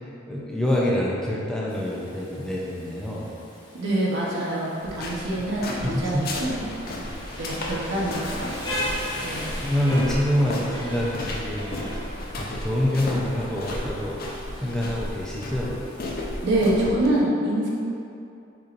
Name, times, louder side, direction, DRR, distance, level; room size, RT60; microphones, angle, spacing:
voice 1, 0.3-3.3 5.8-6.3 6.9-7.1 9.6-12.1 12.4-14.2 14.6-15.7, left 1 dB, 5° left, -5 dB, 0.4 m, -26 dB
Rain, 1.7-16.8, equal, 25° left, 0.9 m, -39 dB
voice 2, 3.8-6.6 7.4-8.6 9.2-9.6 16.4-17.7, right 1 dB, 65° right, -5 dB, 0.9 m, -25 dB
sound 1, 4.8-17.1, left 1 dB, 50° left, 0.5 m, -34 dB
6.5 x 3.0 x 2.5 m, 2.6 s
head